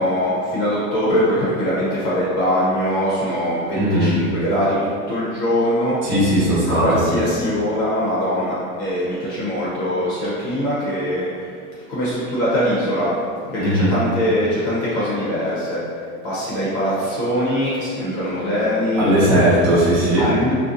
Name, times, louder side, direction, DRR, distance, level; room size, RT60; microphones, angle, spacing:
voice 1, 0.0-6.0 6.8-11.3 11.9-13.1 13.5-15.8 16.2-19.1 20.2-20.5, equal, 45° left, -8 dB, 0.7 m, -22 dB
voice 2, 3.7-4.1 6.0-7.0 13.6-13.9 19.0-20.3, right 1 dB, 35° right, -9 dB, 0.9 m, -17 dB
2.5 x 2.1 x 2.5 m, 2.3 s
supercardioid pair, 140°, 41 cm